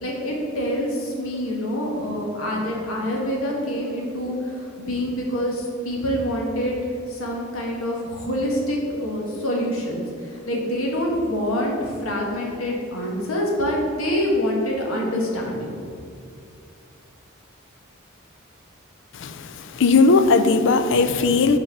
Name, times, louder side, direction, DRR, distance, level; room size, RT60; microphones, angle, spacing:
voice 1, 0.0-6.8 7.1-15.7, equal, 85° left, -2 dB, 1.4 m, -26 dB
voice 2, 19.7-21.6, left 4 dB, 60° left, 10 dB, 0.4 m, -17 dB
6.2 x 4.3 x 5.8 m, 2.4 s
head